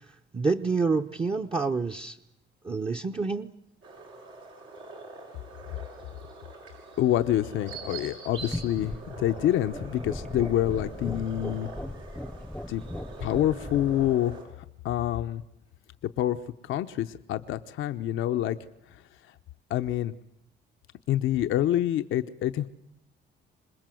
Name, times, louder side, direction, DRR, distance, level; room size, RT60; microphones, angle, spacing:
voice 1, 0.3-2.2 2.6-3.5, right 4 dB, 25° right, 9 dB, 0.9 m, -27 dB
sound 1, 3.8-14.4, right 3 dB, 85° right, 7.7 m, -44 dB
voice 2, 7.0-8.9 9.2-11.7 12.7-12.8 13.2-15.4 16.2-16.4 16.6-18.6 18.9-19.0 19.7-20.1 21.1-22.7, left 12 dB, 85° left, 8 dB, 0.8 m, -27 dB
sound 2, 8.5-14.2, left 1 dB, 5° left, 0.8 m, -38 dB
26.5 x 20.5 x 7.7 m, 0.81 s
cardioid pair, 90°, 20 cm